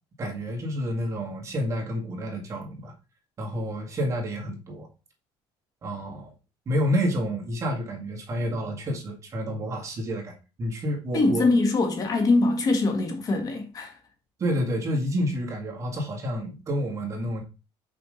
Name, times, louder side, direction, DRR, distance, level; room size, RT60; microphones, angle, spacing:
voice 1, 0.2-2.9 3.4-4.9 5.8-6.3 6.7-10.3 10.6-11.5 14.4-17.4, equal, 30° right, 2.0 m, -29 dB
voice 2, 11.1-13.9, left 3 dB, 35° left, 1.5 m, -23 dB
6.0 x 5.0 x 3.8 m
cardioid pair, 145°, 10 cm